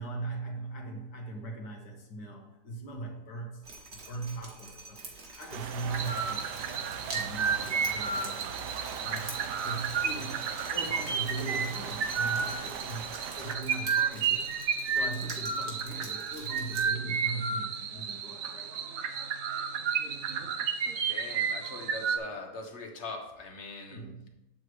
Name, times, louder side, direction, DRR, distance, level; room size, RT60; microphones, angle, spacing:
voice 1, 0.0-3.6 3.9-6.5 7.1-8.7 9.0-14.6 14.9-19.1 20.3-20.5 23.9-24.3, right 3 dB, 80° left, 1 dB, 1.9 m, -40 dB
Drip, 3.6-16.8, right 3 dB, 40° right, 1.4 m, -47 dB
sound 1, 5.5-13.6, right 7 dB, 85° right, 1.2 m, -40 dB
sound 2, 5.9-22.2, right 6 dB, 65° right, 1.0 m, -32 dB
voice 2, 21.1-24.0, left 2 dB, 45° left, 3 dB, 1.2 m, -41 dB
7.8 x 7.7 x 3.2 m, 0.89 s
omnidirectional pair, 1.8 m